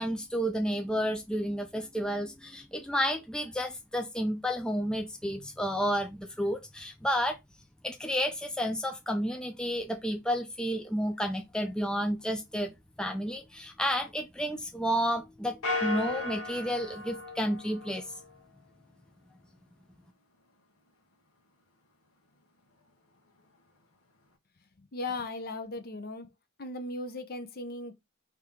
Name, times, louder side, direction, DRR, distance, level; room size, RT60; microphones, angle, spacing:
voice 1, 0.0-7.4 7.8-18.1, equal, 5° left, 0.4 m, -31 dB
sound 1, 15.6-18.3, left 2 dB, 85° left, 1.1 m, -35 dB
voice 2, 24.8-26.3 26.6-27.9, left 2 dB, 45° left, 0.7 m, -37 dB
4.8 x 2.9 x 3.7 m
head